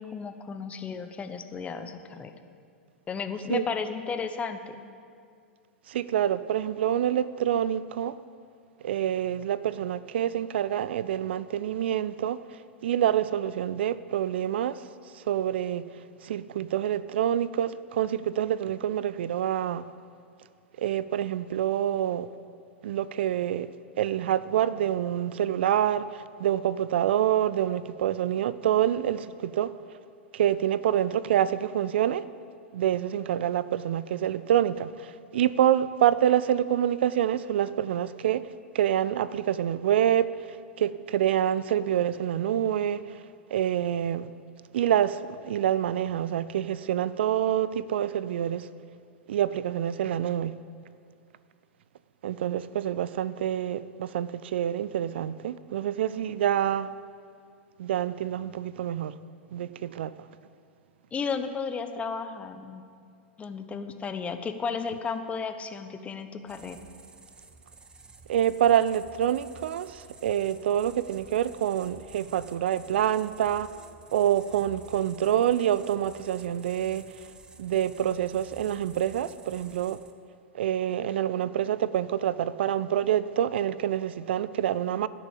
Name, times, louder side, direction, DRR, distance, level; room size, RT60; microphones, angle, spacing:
voice 1, 0.0-2.3 3.1-4.8 61.1-62.8 63.4-66.8, left 5 dB, 20° left, 0.9 m, -33 dB
voice 2, 5.9-8.2 8.8-14.9 15.1-19.9 20.8-22.3 22.8-29.8 30.3-32.3 32.7-43.2 43.5-44.3 44.7-48.7 49.3-50.6 52.2-56.9 57.8-59.2 59.5-60.3 68.3-77.3 77.6-80.0 80.5-85.1, right 10 dB, 60° right, 0.4 m, -27 dB
sound 1, 66.5-80.1, right 4 dB, 10° right, 0.8 m, -51 dB
15.5 x 6.9 x 7.3 m
figure-of-eight pair, 95°, 7 cm